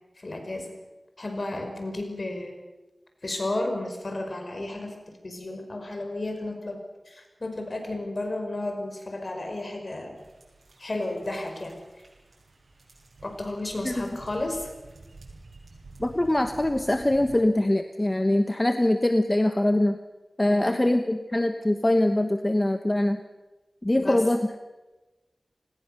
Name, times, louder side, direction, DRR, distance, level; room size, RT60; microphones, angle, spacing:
voice 1, 0.2-0.7 1.2-2.6 3.2-5.0 5.2-10.2 10.8-11.8 13.2-14.7 20.5-20.8 23.9-24.2, left 2 dB, 50° left, 5 dB, 5.3 m, -33 dB
sound 1, 10.2-17.4, right 3 dB, 90° right, 7.0 m, -49 dB
voice 2, 16.0-20.0 20.4-23.2 23.8-24.4, left 1 dB, 25° left, 7 dB, 1.2 m, -23 dB
29.0 x 19.5 x 6.8 m, 1.1 s
wide cardioid pair, 65°, 0 cm